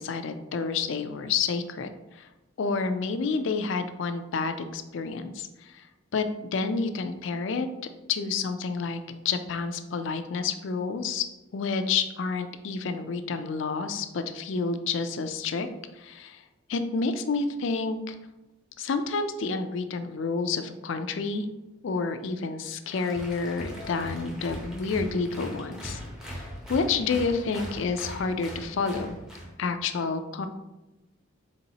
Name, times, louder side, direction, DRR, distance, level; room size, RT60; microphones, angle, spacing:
voice 1, 0.0-2.3 2.6-5.9 6.1-7.7 8.1-9.0 9.2-11.2 11.5-15.7 15.9-16.4 16.7-18.2 18.8-21.5 21.8-26.0 26.3-26.4 26.7-29.2 29.6-30.5, left 4 dB, 65° left, 9 dB, 0.4 m, -29 dB
Applause, 22.9-29.5, equal, 5° right, 0.6 m, -40 dB
4.1 x 3.7 x 2.8 m, 1.0 s
head